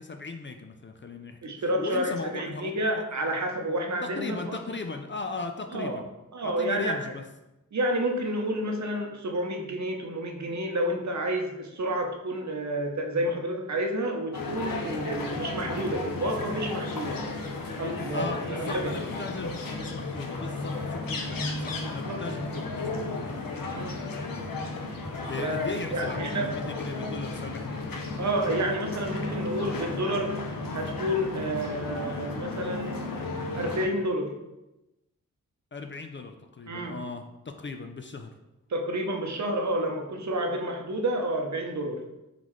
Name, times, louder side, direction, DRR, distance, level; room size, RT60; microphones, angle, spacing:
voice 1, 0.0-2.7 3.1-3.2 4.0-6.0 6.4-7.2 18.1-23.3 25.3-27.8 35.7-38.3, left 3 dB, 35° left, 5 dB, 0.4 m, -37 dB
voice 2, 1.4-4.6 5.7-6.0 6.3-7.0 7.7-17.2 17.8-18.9 22.1-22.2 23.7-24.0 25.4-26.5 28.2-30.4 30.7-33.1 33.5-34.3 36.7-37.0 38.7-42.0, right 1 dB, 55° right, 2 dB, 0.7 m, -30 dB
sound 1, 14.3-33.9, left 3 dB, 85° left, 0.7 m, -34 dB
3.8 x 3.7 x 3.1 m, 0.96 s
cardioid pair, 55°, 33 cm